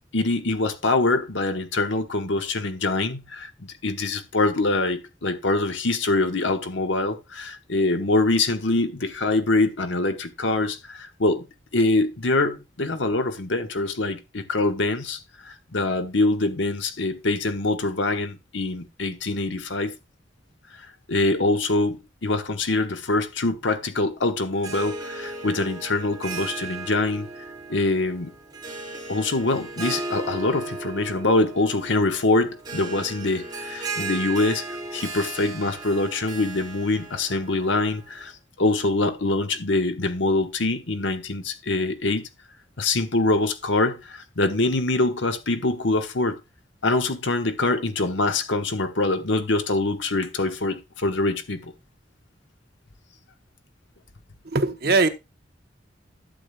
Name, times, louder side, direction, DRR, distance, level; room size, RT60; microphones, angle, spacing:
voice 1, 0.1-11.5 11.7-19.9 21.1-27.3 27.7-28.3 29.1-34.6 34.9-38.3 38.6-42.3 42.8-46.4 46.8-51.7, left 2 dB, 75° left, 1.2 m, -24 dB
Harp, 24.5-38.3, right 3 dB, 20° right, 2.3 m, -36 dB
voice 2, 54.5-55.1, right 3 dB, 55° right, 0.9 m, -20 dB
11.5 x 8.5 x 2.3 m
head